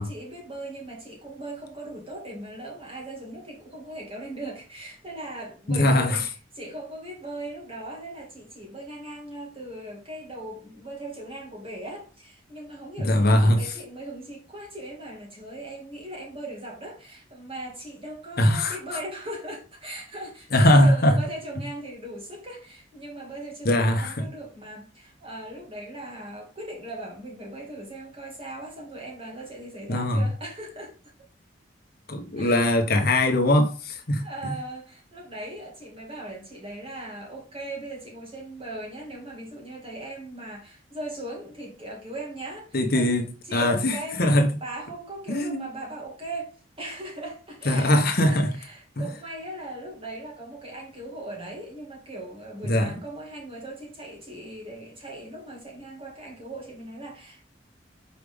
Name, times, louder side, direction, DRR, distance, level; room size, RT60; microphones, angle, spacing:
voice 1, 0.0-6.3 6.5-31.1 32.4-32.7 34.2-43.2 43.5-44.3 44.6-57.4, right 1 dB, 30° right, 2.3 m, -39 dB
voice 2, 5.7-6.2 13.0-13.7 18.4-18.8 20.5-21.2 23.6-24.1 29.9-30.2 32.1-34.5 42.7-44.5 45.3-45.7 47.6-48.5 49.0-49.1 52.7-52.9, left 1 dB, 55° left, 1.0 m, -21 dB
5.7 x 4.7 x 3.5 m
head